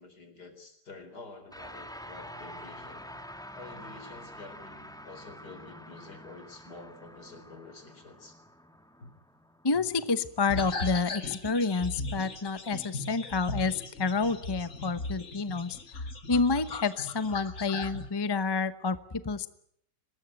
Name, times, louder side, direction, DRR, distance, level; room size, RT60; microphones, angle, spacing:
voice 1, 0.0-3.1 3.5-8.4 9.0-9.1, left 3 dB, 70° left, 8 dB, 4.5 m, -48 dB
sound 1, 1.5-11.0, equal, ahead, 1.3 m, -47 dB
voice 2, 9.6-19.0 19.2-19.5, left 4 dB, 20° left, 12 dB, 0.6 m, -29 dB
sound 2, 10.5-18.1, left 2 dB, 50° left, 2.4 m, -38 dB
23.5 x 20.0 x 9.1 m, 0.69 s
omnidirectional pair, 1.8 m